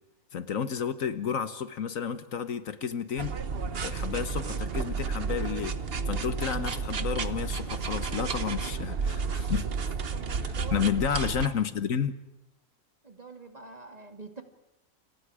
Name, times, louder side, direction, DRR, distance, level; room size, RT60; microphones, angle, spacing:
voice 1, 0.3-3.4 3.8-5.8 6.1-9.7 10.4-12.2, left 7 dB, 70° left, 1.5 m, -31 dB
sound 1, 3.2-11.5, right 5 dB, 45° right, 1.2 m, -31 dB
voice 2, 10.1-10.9 11.4-11.5 13.0-14.4, right 4 dB, 25° right, 2.4 m, -45 dB
29.0 x 28.0 x 5.0 m
omnidirectional pair, 1.5 m